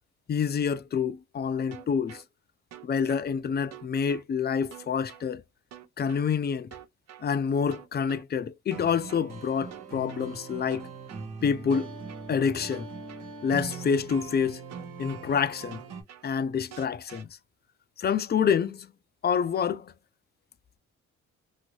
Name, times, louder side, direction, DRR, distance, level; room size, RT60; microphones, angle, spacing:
voice 1, 0.3-2.2 2.8-5.4 6.0-6.7 7.2-10.9 11.4-12.0 12.3-12.9 13.4-14.6 15.0-15.8 16.2-17.3 18.0-18.9 19.2-19.9, left 6 dB, 35° left, 0.5 m, -27 dB
sound 1, 1.7-2.2 2.7-3.2 3.7-4.2 4.7-5.2 5.7-6.2 6.7-7.2 7.7-8.2 8.7-9.2 9.7-10.2 10.7-11.2 11.7-12.2 12.7-13.2 13.7-14.2 14.7-15.2 15.7-16.2 16.7-17.2, right 11 dB, 60° right, 0.6 m, -47 dB
sound 2, 8.7-16.0, right 4 dB, 85° right, 1.4 m, -41 dB
2.7 x 2.7 x 2.9 m
cardioid pair, 90°, 30 cm